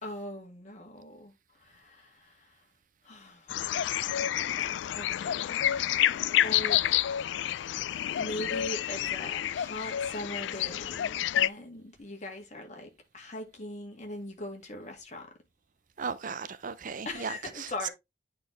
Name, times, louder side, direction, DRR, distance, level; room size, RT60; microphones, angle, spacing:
voice 1, 0.0-2.6 3.0-3.9 4.9-5.6 6.0-7.0 8.2-15.3 17.1-17.9, left 1 dB, 40° left, 2.1 m, -41 dB
sound 1, 3.5-11.5, left 11 dB, 80° left, 0.3 m, -29 dB
voice 2, 16.0-17.3 17.6-17.9, right 6 dB, 50° right, 0.5 m, -36 dB
9.5 x 4.3 x 3.3 m
head